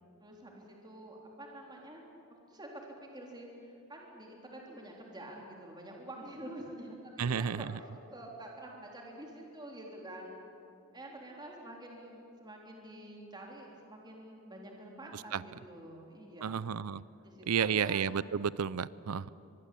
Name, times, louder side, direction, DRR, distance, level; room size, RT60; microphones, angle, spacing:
voice 1, 0.2-2.0 2.5-10.3 10.9-16.6 17.2-18.0 19.1-19.3, right 1 dB, 20° right, -1 dB, 3.6 m, -48 dB
voice 2, 7.2-7.7 15.1-15.4 16.4-17.0 17.5-19.3, right 7 dB, 80° right, 19 dB, 0.5 m, -32 dB
24.0 x 23.5 x 8.4 m, 2.7 s
head